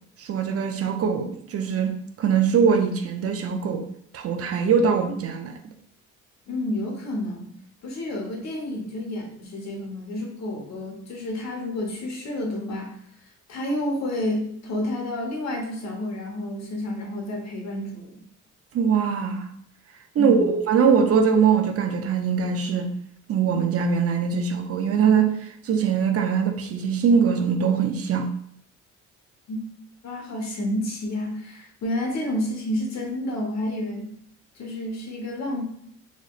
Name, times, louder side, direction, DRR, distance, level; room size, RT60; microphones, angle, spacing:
voice 1, 0.2-3.8 4.1-5.5 18.7-19.5 20.2-22.9 23.3-28.3, right 6 dB, 50° right, 0.5 m, -22 dB
voice 2, 6.5-7.5 7.8-12.9 13.5-18.2 20.2-20.5 29.5-29.6 30.0-34.1 34.6-35.6, left 1 dB, 60° left, 1.1 m, -30 dB
4.1 x 3.1 x 2.4 m
cardioid pair, 90°, 30 cm